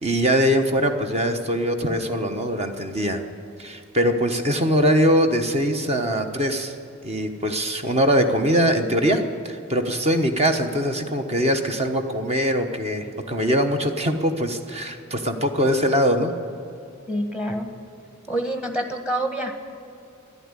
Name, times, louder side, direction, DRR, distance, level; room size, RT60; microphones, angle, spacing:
voice 1, 0.0-3.2 3.6-6.7 7.0-16.3, equal, 30° right, 6 dB, 1.1 m, -22 dB
voice 2, 17.1-17.7 18.3-19.5, right 1 dB, 5° right, 5 dB, 1.5 m, -26 dB
13.5 x 11.0 x 9.8 m, 2.5 s
head